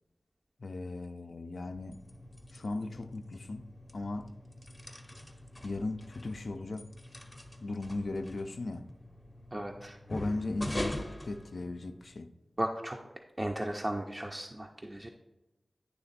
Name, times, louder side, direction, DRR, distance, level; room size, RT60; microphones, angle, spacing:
voice 1, 0.6-2.0 2.5-3.7 3.9-4.3 5.6-6.9 7.6-8.9 10.1-12.3, left 2 dB, 65° left, 0.4 m, -37 dB
sound 1, 1.7-12.2, left 1 dB, 15° left, 0.7 m, -44 dB
voice 2, 9.5-10.0 12.6-13.0 13.4-15.1, right 1 dB, 25° right, 0.4 m, -35 dB
9.7 x 3.3 x 4.0 m
wide cardioid pair, 90°, 0 cm